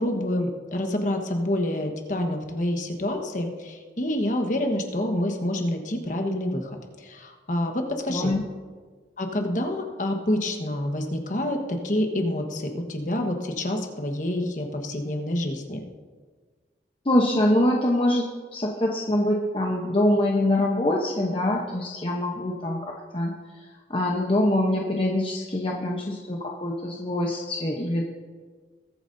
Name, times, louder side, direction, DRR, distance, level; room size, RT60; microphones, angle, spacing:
voice 1, 0.0-6.8 7.0-8.3 9.2-15.8, left 1 dB, 45° left, 3 dB, 1.3 m, -27 dB
voice 2, 8.1-8.4 17.0-23.3 23.9-28.1, left 1 dB, 30° left, -1 dB, 0.9 m, -24 dB
21.0 x 9.0 x 2.7 m, 1.5 s
head